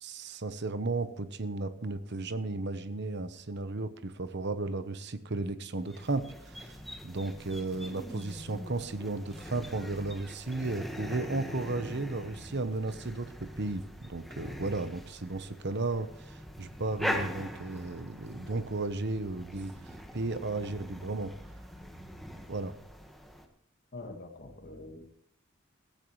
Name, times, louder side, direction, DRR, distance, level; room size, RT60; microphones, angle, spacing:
voice 1, 0.0-6.8 7.0-19.7 20.1-21.3 22.5-22.7, right 2 dB, 55° right, 11 dB, 1.0 m, -34 dB
sound 1, 5.8-23.5, equal, ahead, 1.5 m, -42 dB
voice 2, 23.9-25.1, left 2 dB, 50° left, 5 dB, 1.9 m, -44 dB
16.0 x 15.0 x 3.2 m, 0.72 s
head